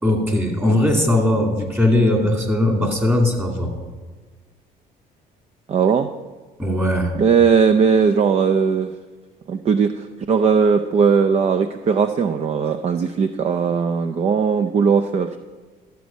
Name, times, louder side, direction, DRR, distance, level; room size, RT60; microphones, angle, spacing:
voice 1, 0.0-3.7 6.6-7.1, left 1 dB, 15° right, 2 dB, 2.4 m, -19 dB
voice 2, 5.7-6.1 7.2-8.9 9.5-15.4, right 6 dB, 40° right, 9 dB, 0.5 m, -18 dB
13.0 x 8.1 x 5.2 m, 1.4 s
cardioid pair, 110°, 17 cm